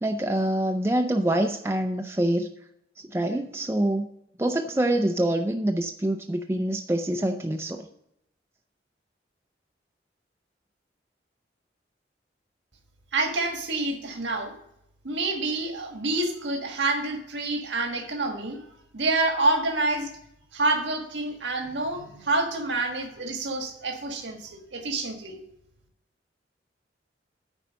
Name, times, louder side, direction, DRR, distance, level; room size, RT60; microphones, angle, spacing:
voice 1, 0.0-2.5 3.0-4.1 4.4-7.9, right 1 dB, 15° right, 4 dB, 0.4 m, -25 dB
voice 2, 13.1-14.5 15.0-18.7 18.9-20.1 20.5-25.4, right 2 dB, 85° right, 3 dB, 1.5 m, -27 dB
9.3 x 4.5 x 7.3 m, 0.76 s
head